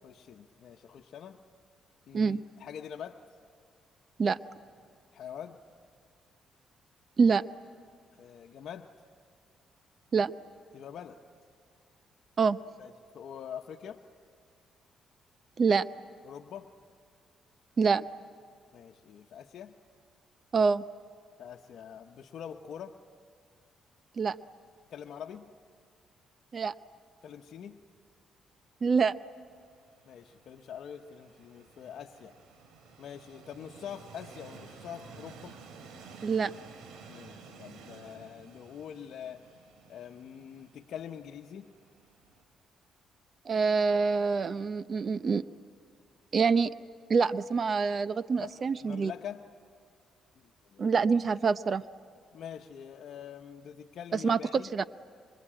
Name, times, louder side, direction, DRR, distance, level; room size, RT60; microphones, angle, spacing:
voice 1, 0.0-1.4 2.1-3.2 5.1-5.6 8.2-8.9 10.7-11.2 12.8-14.0 16.2-16.7 18.7-19.7 21.4-23.0 24.9-25.5 27.2-27.8 30.0-32.3 33.0-35.6 37.1-39.5 39.9-41.7 48.4-49.5 50.4-50.9 52.3-54.7, left 8 dB, 70° left, 2 dB, 1.1 m, -44 dB
voice 2, 20.5-20.8 24.2-24.4 26.5-26.7 28.8-29.2 36.2-36.5 43.5-45.4 46.3-46.7 47.1-49.1 50.8-51.8 54.1-54.4 54.7-54.8, right 5 dB, 45° right, 14 dB, 0.6 m, -26 dB
Train, 29.5-42.4, right 5 dB, 80° right, 2.8 m, -53 dB
26.5 x 25.0 x 8.9 m, 2.1 s
cardioid pair, 90°, 0 cm